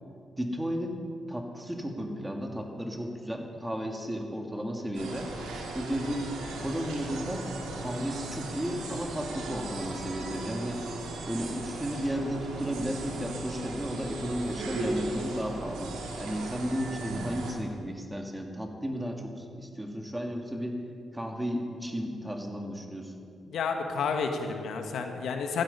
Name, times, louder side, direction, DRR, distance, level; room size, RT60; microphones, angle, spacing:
voice 1, 0.4-1.0 1.3-5.3 5.7-7.5 7.8-10.8 11.3-20.8 21.1-23.1, equal, 10° right, 3 dB, 2.4 m, -34 dB
sound 1, 4.9-17.5, right 2 dB, 90° right, 2.3 m, -37 dB
voice 2, 23.5-25.6, left 5 dB, 80° left, 5 dB, 1.4 m, -30 dB
14.5 x 12.5 x 5.5 m, 2.4 s
supercardioid pair, 55°, 0 cm